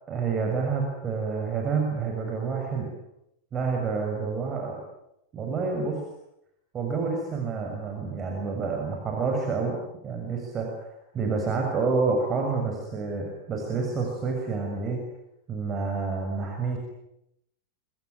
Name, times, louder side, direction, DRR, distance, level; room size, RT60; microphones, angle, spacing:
voice 1, 0.1-2.9 3.5-4.8 5.3-6.0 6.7-9.8 10.0-10.9 11.1-15.0 15.5-16.8, right 4 dB, 25° right, 2 dB, 6.6 m, -28 dB
27.5 x 22.5 x 9.6 m, 0.81 s
figure-of-eight pair, 90°, 0 cm